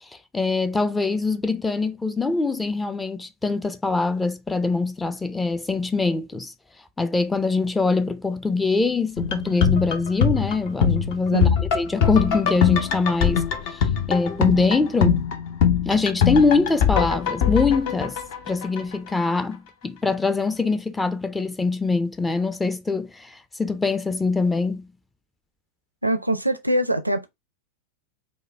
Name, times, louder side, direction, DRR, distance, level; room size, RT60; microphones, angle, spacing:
voice 1, 0.3-6.5 7.0-11.5 11.7-13.8 14.1-15.3 15.9-18.2 18.5-24.9, left 3 dB, 10° left, 0.5 m, -23 dB
sound 1, 9.2-19.1 19.4-19.5, left 7 dB, 50° left, 0.7 m, -22 dB
voice 2, 11.3-11.6 26.0-27.3, right 1 dB, 85° right, 0.5 m, -23 dB
5.0 x 2.2 x 3.3 m
figure-of-eight pair, 90°, 0 cm